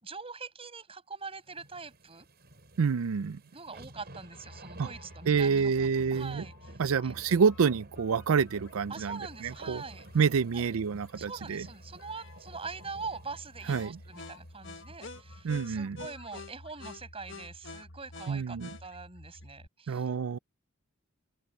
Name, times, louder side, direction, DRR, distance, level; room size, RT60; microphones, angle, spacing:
voice 1, 0.0-2.3 3.5-7.1 8.9-10.1 10.5-10.7 11.2-20.1, right 4 dB, 25° right, 6.0 m, -43 dB
sound 1, 1.4-15.9 16.3-16.4, right 1 dB, 50° right, 7.0 m, -53 dB
voice 2, 2.8-3.4 4.8-4.9 5.3-6.5 6.8-9.8 10.1-11.7 13.7-14.0 15.4-16.0 18.3-18.7 19.9-20.4, right 6 dB, 85° right, 0.5 m, -28 dB
sound 2, 4.3-19.7, left 2 dB, 60° left, 1.8 m, -49 dB
head